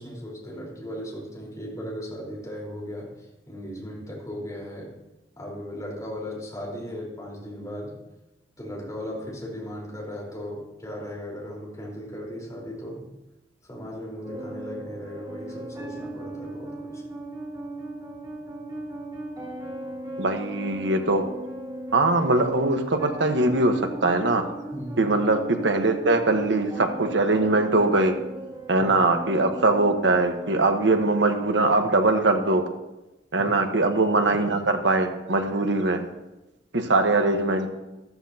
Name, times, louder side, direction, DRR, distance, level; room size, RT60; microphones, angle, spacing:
voice 1, 0.0-4.9 5.4-8.0 8.6-13.1 13.6-17.0 24.7-25.0 28.8-28.9 33.4-33.6, equal, 20° left, -3 dB, 4.3 m, -37 dB
sound 1, 14.2-31.2, right 1 dB, 25° right, 3.8 m, -37 dB
voice 2, 20.2-21.2 21.9-24.4 25.0-28.1 28.7-32.6 33.3-36.0 36.7-37.7, right 2 dB, 80° right, 5 dB, 1.3 m, -22 dB
14.0 x 13.5 x 2.9 m, 1.0 s
head